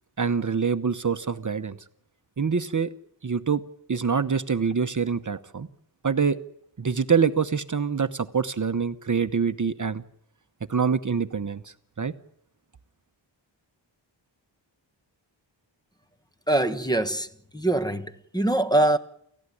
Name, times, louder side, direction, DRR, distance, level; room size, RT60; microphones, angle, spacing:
voice 1, 0.2-1.8 2.4-2.9 3.2-3.6 3.9-5.7 6.0-6.4 6.8-10.0 10.7-12.1, right 6 dB, 40° right, 0.9 m, -25 dB
voice 2, 16.5-17.3 17.5-19.0, right 2 dB, 10° left, 1.3 m, -23 dB
29.5 x 16.0 x 9.9 m
wide cardioid pair, 115°, 46 cm